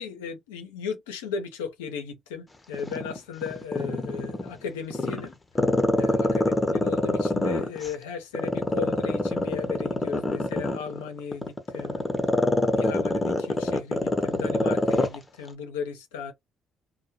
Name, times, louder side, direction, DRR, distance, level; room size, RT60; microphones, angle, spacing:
voice 1, 0.0-5.3 6.0-12.0 12.7-16.3, left 6 dB, 90° left, 0.5 m, -36 dB
Growling, 2.7-4.5 4.9-7.9 8.3-15.2 15.5-15.6, left 2 dB, 25° left, 0.7 m, -24 dB
2.1 x 2.1 x 2.7 m
hypercardioid pair, 55°, 0 cm